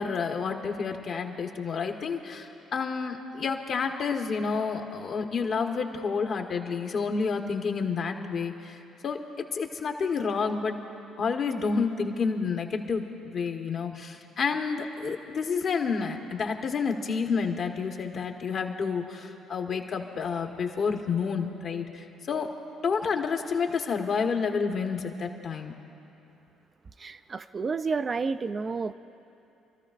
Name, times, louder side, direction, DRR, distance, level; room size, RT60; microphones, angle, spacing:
voice 1, 0.0-8.8 9.0-9.2 9.5-10.8 11.2-22.5 22.8-25.7, left 5 dB, 55° left, 3 dB, 1.2 m, -29 dB
voice 2, 27.0-28.9, right 4 dB, 40° right, 10 dB, 0.4 m, -30 dB
29.0 x 13.5 x 2.5 m, 2.8 s
hypercardioid pair, 55°, 0 cm